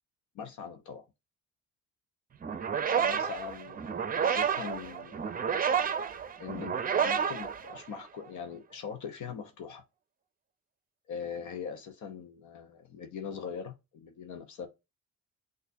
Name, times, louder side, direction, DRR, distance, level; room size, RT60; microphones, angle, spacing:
voice 1, 0.3-1.0 2.9-5.6 6.4-9.8 11.1-14.7, left 7 dB, 75° left, 0.8 m, -41 dB
sound 1, 2.4-8.2, right 7 dB, 30° right, 0.5 m, -30 dB
6.5 x 2.5 x 2.6 m
cardioid pair, 90°, 30 cm